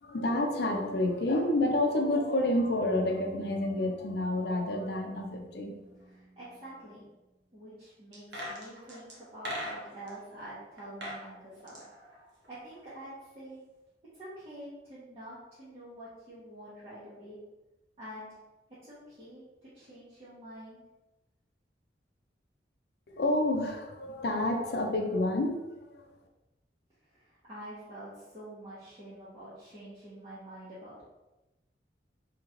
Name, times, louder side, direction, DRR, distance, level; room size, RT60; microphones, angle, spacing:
voice 1, 0.0-5.8 23.1-26.0, left 1 dB, 65° left, 2 dB, 0.5 m, -29 dB
Bass guitar, 2.8-6.8, right 2 dB, 50° right, 0.4 m, -47 dB
voice 2, 6.1-7.1 7.5-11.8 12.5-13.6 14.1-17.4 18.0-18.3 18.8-20.8 27.1-31.0, right 1 dB, 35° right, -11 dB, 1.0 m, -47 dB
sound 1, 8.1-10.1 10.8-11.2 11.5-12.9 13.2-13.3, equal, 75° right, 0.9 m, -40 dB
3.0 x 2.9 x 3.8 m, 1.0 s
head